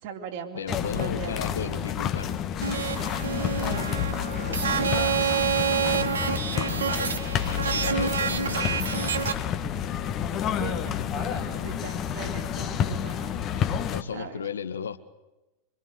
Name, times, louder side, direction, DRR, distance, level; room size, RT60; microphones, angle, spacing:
voice 1, 0.0-2.1 3.7-4.1 4.8-5.5 6.3-6.8 10.6-13.7 14.1-14.4, right 7 dB, 50° right, 3.6 m, -40 dB
voice 2, 0.5-2.5 4.7-5.3 6.0-9.1 13.6-15.0, left 7 dB, 70° left, 1.2 m, -36 dB
sound 1, 0.7-14.0, left 9 dB, 30° left, 1.7 m, -29 dB
sound 2, 2.6-9.3, right 7 dB, 70° right, 1.6 m, -28 dB
26.0 x 22.0 x 8.1 m
figure-of-eight pair, 90°, 0 cm